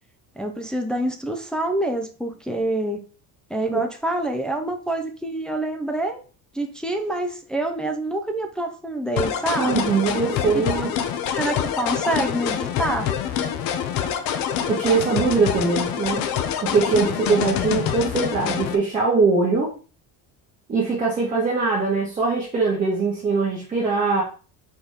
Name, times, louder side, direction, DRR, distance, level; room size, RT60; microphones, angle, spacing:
voice 1, 0.4-3.0 3.5-6.2 6.5-9.8 10.5-10.9 11.3-13.1, right 1 dB, ahead, 3 dB, 0.5 m, -26 dB
sound 1, 9.2-18.8, left 9 dB, 60° left, 0.9 m, -26 dB
voice 2, 9.6-10.9 14.7-16.3 16.6-19.7 20.7-24.2, right 4 dB, 20° right, -5 dB, 1.8 m, -22 dB
5.1 x 4.0 x 5.0 m, 0.36 s
cardioid pair, 175°, 38 cm